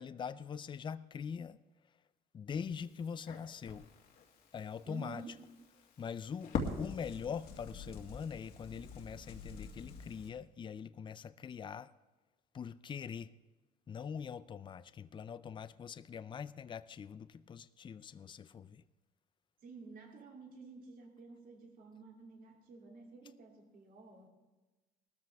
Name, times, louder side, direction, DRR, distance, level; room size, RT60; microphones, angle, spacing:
voice 1, 0.0-1.6 2.3-3.9 4.5-5.2 6.0-11.9 12.5-13.3 13.9-18.8, left 7 dB, 30° left, 0.4 m, -43 dB
Crackle, 2.5-10.3, left 4 dB, 60° left, 2.2 m, -45 dB
voice 2, 4.8-5.4 19.6-24.3, right 4 dB, 60° right, 3.1 m, -51 dB
19.5 x 13.5 x 3.5 m
cardioid pair, 110°, 17 cm